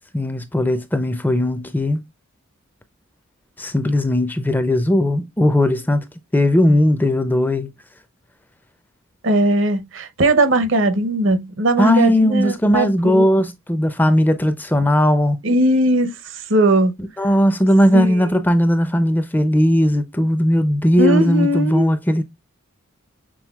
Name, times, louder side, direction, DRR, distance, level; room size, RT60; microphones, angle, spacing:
voice 1, 0.1-2.0 3.6-6.0 6.3-7.7 11.8-15.4 17.2-22.2, left 1 dB, 10° left, 0.4 m, -17 dB
voice 2, 9.2-13.3 15.4-16.1 16.5-16.9 17.9-18.3 21.0-21.9, right 1 dB, 65° right, 0.7 m, -18 dB
6.2 x 3.6 x 2.3 m
head